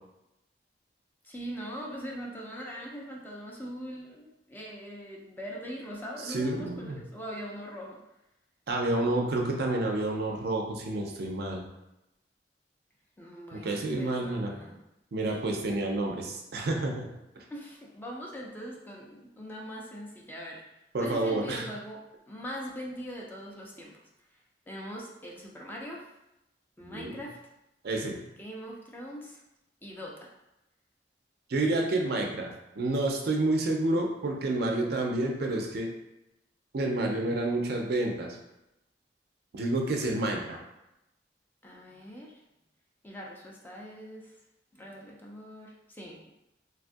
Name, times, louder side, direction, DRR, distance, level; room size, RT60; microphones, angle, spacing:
voice 1, 1.2-8.0 13.2-14.8 17.5-20.6 21.0-24.0 24.7-26.1 26.8-27.4 28.4-29.4 29.8-30.3 41.6-42.3 43.0-44.3 44.7-46.3, equal, 10° left, -2 dB, 0.4 m, -41 dB
voice 2, 6.2-7.0 8.7-11.6 13.5-14.6 15.1-17.1 20.9-21.7 26.8-27.2 27.8-28.2 31.5-35.9 36.7-38.4 39.5-40.6, right 2 dB, 60° right, 1 dB, 0.5 m, -29 dB
3.4 x 2.3 x 2.5 m, 0.90 s
head